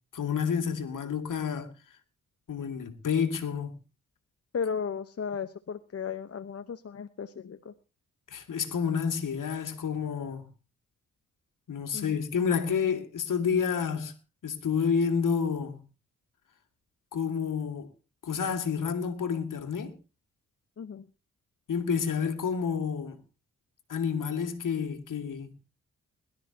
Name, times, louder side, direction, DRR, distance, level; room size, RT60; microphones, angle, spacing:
voice 1, 0.1-1.7 2.5-3.7 8.3-10.4 11.7-14.1 14.4-15.8 17.1-17.9 18.2-20.0 21.7-23.2 23.9-25.5, left 6 dB, 65° left, 2.2 m, -29 dB
voice 2, 4.5-7.7 11.9-12.2 20.8-21.0, left 6 dB, 45° left, 1.0 m, -35 dB
22.0 x 12.5 x 2.9 m
supercardioid pair, 45°, 34 cm